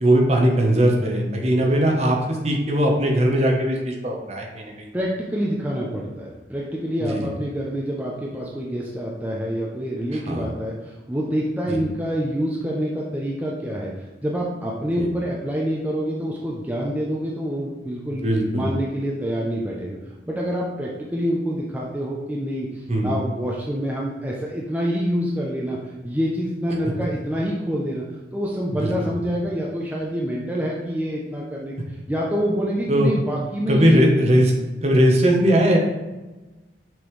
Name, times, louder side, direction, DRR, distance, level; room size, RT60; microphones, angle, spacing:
voice 1, 0.0-4.9 7.0-7.3 10.3-10.5 11.7-11.8 18.2-18.7 22.9-23.2 28.8-29.1 32.9-33.1 33.7-34.5 34.8-35.8, right 1 dB, 40° right, 0 dB, 1.0 m, -19 dB
voice 2, 4.9-13.9 14.2-18.2 18.5-20.0 20.3-28.0 28.3-34.0, equal, 10° right, -4 dB, 0.6 m, -26 dB
6.1 x 5.2 x 3.2 m, 1.1 s
head